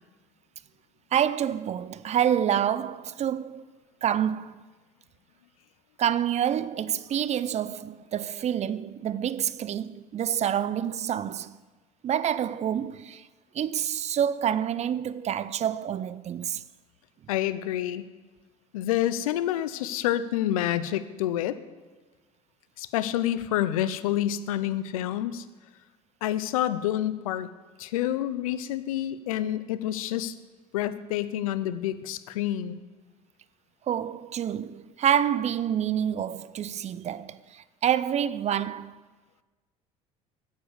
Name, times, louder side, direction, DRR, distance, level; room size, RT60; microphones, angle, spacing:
voice 1, 1.1-3.7 4.0-4.5 6.0-11.6 12.0-13.3 13.5-16.6 33.9-38.9, right 9 dB, 40° right, 0.5 m, -27 dB
voice 2, 17.3-18.0 18.7-21.6 22.8-25.4 26.2-27.5 27.8-30.3 30.7-32.8, left 12 dB, 85° left, 0.6 m, -28 dB
9.4 x 7.4 x 7.2 m
hypercardioid pair, 70°, 18 cm